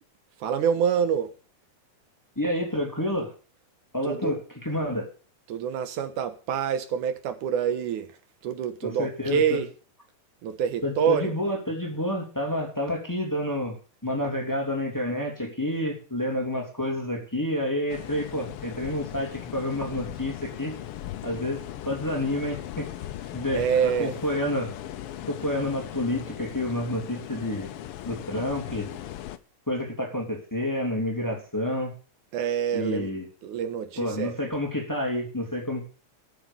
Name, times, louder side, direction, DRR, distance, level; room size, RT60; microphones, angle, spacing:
voice 1, 0.4-1.3 4.0-4.3 5.5-8.2 8.4-9.7 10.4-11.3 23.5-24.1 32.3-33.1 33.4-34.4, right 7 dB, 85° right, 2.7 m, -26 dB
voice 2, 2.4-3.3 3.9-4.4 4.6-5.1 8.8-9.6 10.8-13.8 14.0-20.8 21.2-22.8 23.3-23.6 24.0-24.7 25.3-27.7 28.1-28.9 29.7-31.9 32.7-33.2 34.0-35.9, left 1 dB, 5° left, 2.8 m, -29 dB
sound 1, 17.9-29.4, left 12 dB, 75° left, 1.3 m, -38 dB
14.0 x 7.3 x 7.0 m
omnidirectional pair, 3.5 m